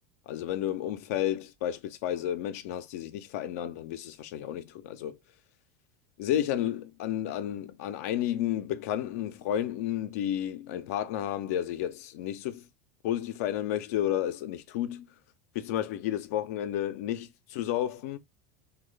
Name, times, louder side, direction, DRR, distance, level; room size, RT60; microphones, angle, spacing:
voice 1, 0.3-5.2 6.2-12.7 13.0-15.1 15.5-18.2, left 11 dB, 65° left, 0.5 m, -32 dB
3.0 x 2.3 x 3.4 m
hypercardioid pair, 85°, 9 cm